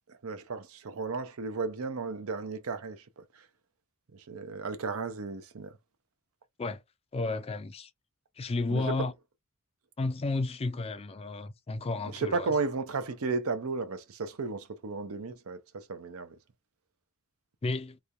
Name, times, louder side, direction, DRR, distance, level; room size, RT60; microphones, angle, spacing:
voice 1, 0.2-3.2 4.1-5.8 8.7-9.1 12.0-16.4, right 4 dB, 70° right, 0.6 m, -34 dB
voice 2, 7.1-7.9 8.4-9.1 10.0-12.5 17.6-18.0, left 3 dB, 25° left, 0.4 m, -32 dB
3.0 x 2.2 x 2.5 m
head